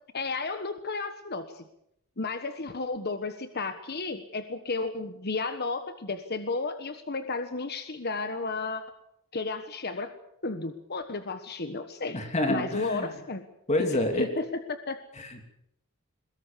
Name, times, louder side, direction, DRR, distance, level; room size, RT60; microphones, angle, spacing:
voice 1, 0.1-1.6 2.2-8.8 9.3-10.1 10.4-12.2 12.5-13.4 13.8-13.9 14.2-15.0, left 3 dB, 50° left, 8 dB, 1.3 m, -33 dB
voice 2, 12.1-13.2 13.7-14.3 15.2-15.4, left 1 dB, 30° left, 5 dB, 2.9 m, -28 dB
22.5 x 21.5 x 7.0 m, 0.77 s
head